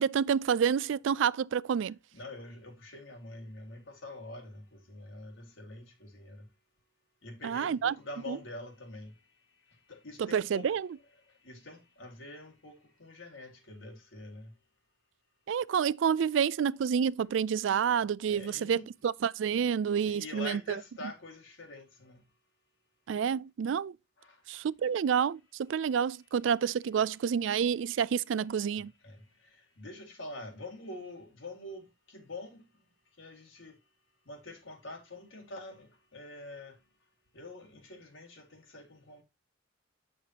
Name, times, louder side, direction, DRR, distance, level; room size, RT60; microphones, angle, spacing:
voice 1, 0.0-2.0 7.4-8.0 8.3-8.4 10.2-10.9 15.5-20.8 23.1-23.9 24.5-28.9, right 7 dB, 70° right, 0.3 m, -29 dB
voice 2, 2.1-6.5 7.2-9.1 9.9-10.7 11.4-14.5 18.3-18.9 20.0-22.2 24.2-24.4 29.0-29.2 29.5-32.6 33.2-33.8 34.3-36.8 37.3-39.2, left 2 dB, 80° left, 2.0 m, -45 dB
8.3 x 6.5 x 2.8 m
head